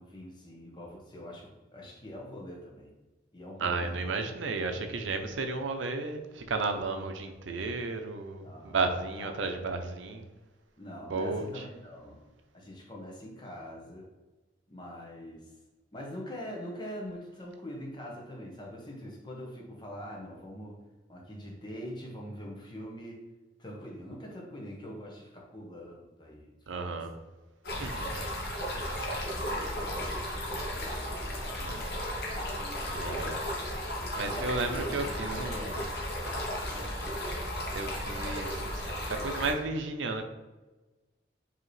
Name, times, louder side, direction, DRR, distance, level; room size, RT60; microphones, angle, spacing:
voice 1, 0.0-2.9 3.3-4.1 8.4-8.8 9.2-9.5 10.8-12.2 12.5-14.1 14.7-15.5 15.9-20.8 21.1-23.2 23.6-27.1 27.7-27.8 28.6-30.9 34.1-35.9 36.7-37.2, equal, 25° left, -1 dB, 0.8 m, -44 dB
voice 2, 3.6-10.3 11.1-11.6 26.7-27.1 27.7-28.2 31.6-31.8 32.9-33.4 34.1-35.8 37.7-38.8 39.1-40.2, right 3 dB, 85° right, 7 dB, 0.5 m, -33 dB
Stream, 27.6-39.5, equal, 55° left, 1.0 m, -34 dB
4.9 x 2.8 x 3.1 m, 1.2 s
head